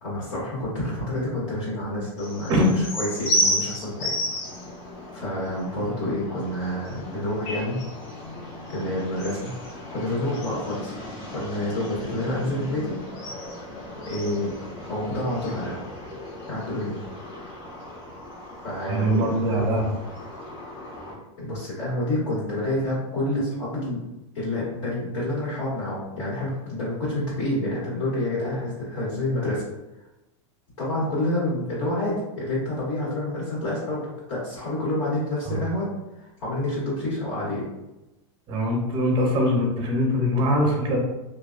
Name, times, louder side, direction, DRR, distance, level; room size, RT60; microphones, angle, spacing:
voice 1, 0.0-4.1 5.1-7.8 8.7-9.6 9.9-10.9 11.3-13.0 14.1-14.5 14.9-15.9 16.5-17.0 18.6-19.6 21.4-24.0 24.3-29.6 30.8-35.9 36.1-37.7, left 1 dB, 90° left, -9 dB, 1.4 m, -28 dB
sound 1, 2.2-21.1, equal, 70° left, 1.1 m, -34 dB
voice 2, 18.9-19.8 35.5-35.6 38.5-41.0, equal, 30° right, 0 dB, 0.7 m, -22 dB
2.6 x 2.2 x 2.4 m, 0.99 s
supercardioid pair, 140°, 16 cm